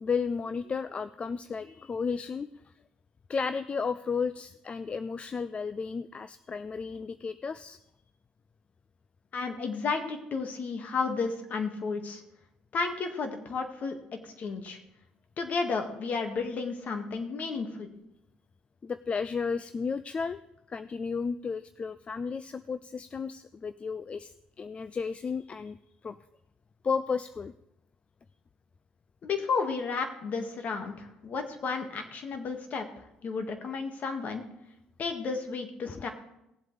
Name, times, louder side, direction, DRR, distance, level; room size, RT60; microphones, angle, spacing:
voice 1, 0.0-2.5 3.3-7.8 18.8-20.4 20.7-25.8 26.0-26.2 26.8-27.5 35.9-36.0, left 5 dB, 35° left, 13 dB, 0.4 m, -33 dB
voice 2, 9.3-12.2 12.7-14.0 14.2-14.8 15.4-18.0 29.2-32.9 33.2-34.4 35.0-36.1, left 4 dB, 55° left, 5 dB, 1.9 m, -32 dB
18.5 x 7.8 x 3.4 m, 0.84 s
supercardioid pair, 65°, 3 cm